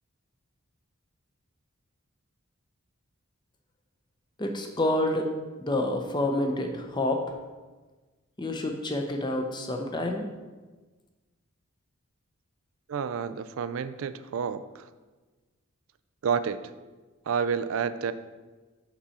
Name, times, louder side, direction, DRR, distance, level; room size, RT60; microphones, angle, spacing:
voice 1, 4.4-5.3 5.6-7.2 8.4-10.3, left 1 dB, 20° left, 3 dB, 0.6 m, -28 dB
voice 2, 12.9-14.9 16.2-16.6 17.3-18.1, right 6 dB, 65° right, 13 dB, 0.3 m, -29 dB
6.0 x 6.0 x 4.1 m, 1.3 s
head